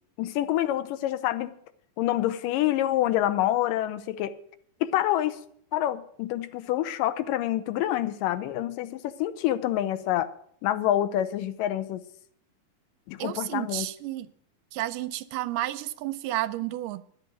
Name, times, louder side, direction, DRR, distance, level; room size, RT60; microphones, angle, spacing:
voice 1, 0.2-1.5 2.0-4.3 4.8-5.4 5.7-10.3 10.6-12.0 13.1-13.9, left 13 dB, 80° left, 2.4 m, -27 dB
voice 2, 13.2-14.3 14.7-17.0, right 15 dB, 80° right, 2.2 m, -31 dB
11.0 x 8.4 x 7.6 m
omnidirectional pair, 3.9 m